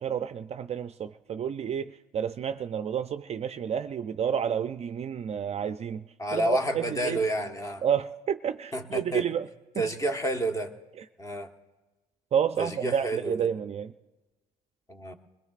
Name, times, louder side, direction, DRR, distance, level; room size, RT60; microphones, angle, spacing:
voice 1, 0.0-6.0 6.3-7.3 7.8-9.5 9.7-9.9 12.3-13.9, right 8 dB, 40° right, 0.4 m, -30 dB
voice 2, 6.2-7.8 8.7-9.3 9.8-10.7 11.2-11.5 12.6-13.5 14.9-15.1, right 1 dB, 20° left, 1.2 m, -29 dB
21.5 x 21.0 x 2.5 m
cardioid pair, 110°, 17 cm